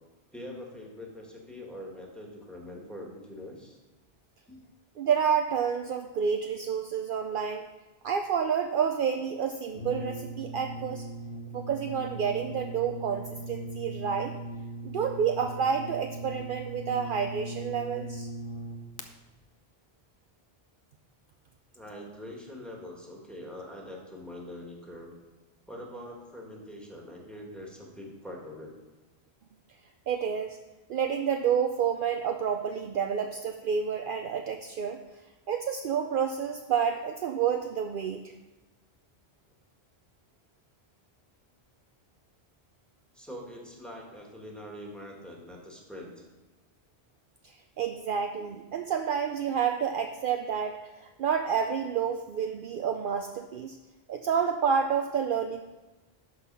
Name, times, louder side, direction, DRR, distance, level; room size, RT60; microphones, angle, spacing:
voice 1, 0.3-3.8 4.5-4.6 21.7-25.1 25.7-28.7 36.1-36.2 43.1-46.2, left 1 dB, ahead, -1 dB, 1.6 m, -43 dB
voice 2, 5.0-7.7 8.0-11.1 11.5-14.3 14.8-18.3 30.1-30.6 30.9-35.0 35.5-38.2 47.4-53.8 54.1-55.6, right 7 dB, 65° right, 5 dB, 0.7 m, -29 dB
Brass instrument, 9.7-19.1, right 2 dB, 65° left, 0.9 m, -39 dB
12.0 x 4.0 x 5.5 m, 1.1 s
omnidirectional pair, 1.1 m